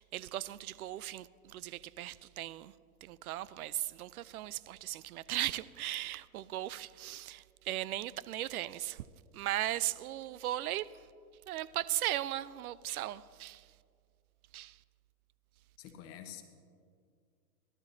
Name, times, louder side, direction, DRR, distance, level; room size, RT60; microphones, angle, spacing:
voice 1, 0.0-2.7 3.0-9.0 9.3-11.0 11.5-13.7 14.5-14.8, right 14 dB, 70° right, 0.5 m, -37 dB
voice 2, 15.8-16.4, left 10 dB, 30° left, 1.1 m, -47 dB
17.0 x 12.0 x 2.7 m
hypercardioid pair, 115°, 46 cm